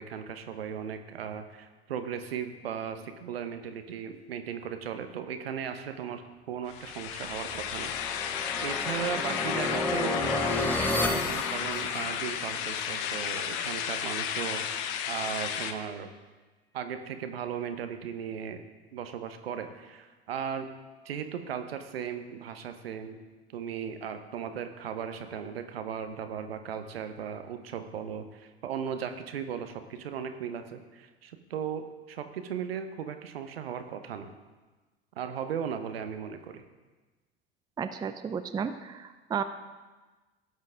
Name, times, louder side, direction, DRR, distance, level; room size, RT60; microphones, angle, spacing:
voice 1, 0.0-6.2 6.5-16.1 16.7-18.6 18.9-20.7 21.0-23.2 23.5-34.3 35.2-36.6, right 8 dB, 70° right, 8 dB, 1.0 m, -37 dB
sound 1, 6.7-15.7, left 8 dB, 50° left, 0.9 m, -33 dB
sound 2, 7.2-12.4, left 1 dB, 5° left, 1.1 m, -32 dB
voice 2, 37.8-39.4, right 7 dB, 15° right, 10 dB, 0.5 m, -33 dB
17.0 x 7.6 x 3.6 m, 1.3 s
figure-of-eight pair, 70°, 31 cm